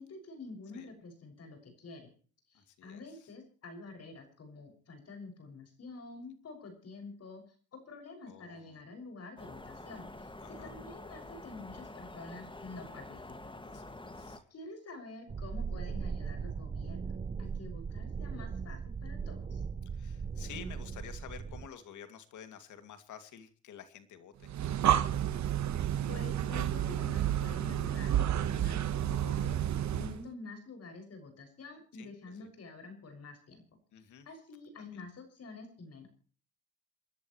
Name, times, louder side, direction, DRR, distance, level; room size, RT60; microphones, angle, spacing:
voice 1, 0.0-2.1 2.5-7.4 7.7-13.6 14.5-19.6 26.1-29.6 29.9-33.6 34.2-36.1, left 3 dB, 55° left, 5 dB, 6.5 m, -48 dB
voice 2, 2.5-3.3 8.3-8.8 10.4-10.7 13.6-14.4 19.9-24.6 31.9-32.5 33.9-34.3 34.8-35.0, left 8 dB, 80° left, 9 dB, 2.5 m, -51 dB
sound 1, 9.4-14.4, left 2 dB, 15° left, 2.0 m, -47 dB
sound 2, 15.3-21.7, right 6 dB, 25° right, 0.7 m, -38 dB
Breathing, 24.4-30.2, right 11 dB, 65° right, 1.3 m, -30 dB
28.0 x 11.5 x 3.2 m, 0.42 s
cardioid pair, 90°, 30 cm